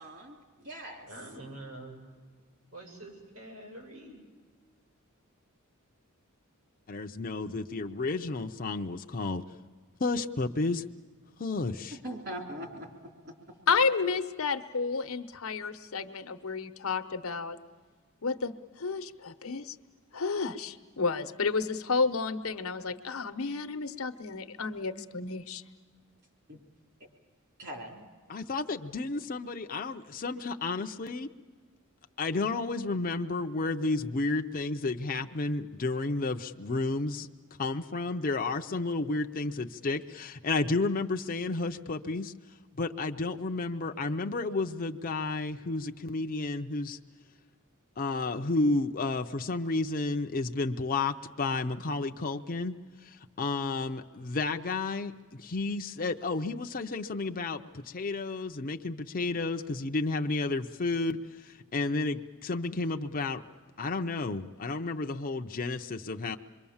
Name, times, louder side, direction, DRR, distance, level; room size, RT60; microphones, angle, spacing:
voice 1, 0.0-1.1 12.0-12.9 26.5-26.6 27.6-28.1, right 1 dB, 55° right, 2 dB, 3.7 m, -41 dB
voice 2, 1.1-2.1 2.7-4.2, right 1 dB, 80° right, 0 dB, 7.6 m, -45 dB
voice 3, 6.9-9.4 10.0-10.8 11.4-12.0 28.3-31.3 32.2-37.3 37.6-42.3 42.7-47.0 48.0-52.7 53.0-63.4 63.8-66.4, left 3 dB, 40° left, 5 dB, 0.6 m, -31 dB
voice 4, 13.7-17.6 18.2-19.8 20.1-25.6, left 4 dB, 75° left, 9 dB, 1.0 m, -31 dB
26.5 x 22.5 x 7.2 m, 1.5 s
head